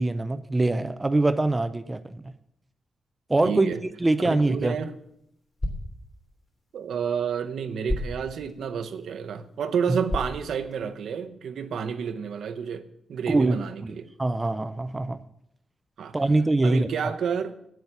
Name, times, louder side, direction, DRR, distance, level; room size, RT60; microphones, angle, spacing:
voice 1, 0.0-2.3 3.3-3.7 4.0-4.7 13.3-15.2 16.1-17.1, right 2 dB, 15° right, 11 dB, 0.5 m, -24 dB
voice 2, 3.4-3.8 4.2-4.9 6.7-14.1 16.0-16.2 16.6-17.6, right 7 dB, 80° right, 8 dB, 0.9 m, -30 dB
sound 1, 4.3-11.3, left 1 dB, 25° left, 3.2 m, -37 dB
9.5 x 7.8 x 7.1 m, 0.75 s
wide cardioid pair, 135°, 0 cm